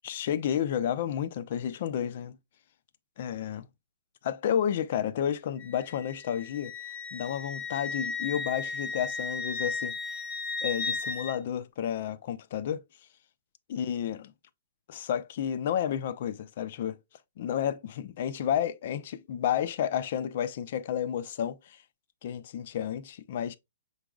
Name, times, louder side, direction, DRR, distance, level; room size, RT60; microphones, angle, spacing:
voice 1, 0.0-2.4 3.2-3.7 4.2-6.7 7.1-10.1 10.6-12.8 13.7-14.3 14.9-17.0 17.4-21.8 22.2-23.6, left 9 dB, 55° left, 0.4 m, -31 dB
Wind instrument woodwind instrument, 5.6-11.4, left 4 dB, 40° left, 1.2 m, -35 dB
5.7 x 4.0 x 2.3 m
hypercardioid pair, 130°, 0 cm